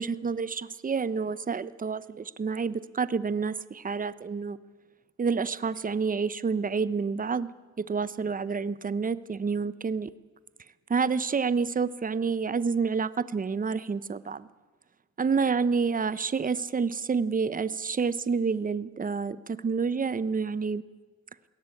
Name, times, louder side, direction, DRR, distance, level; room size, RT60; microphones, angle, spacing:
voice 1, 0.0-4.6 5.2-7.5 7.8-10.1 10.9-14.5 15.2-20.8, right 5 dB, 30° right, 16 dB, 0.9 m, -28 dB
21.5 x 17.5 x 8.6 m, 1.3 s
cardioid pair, 90°, 30 cm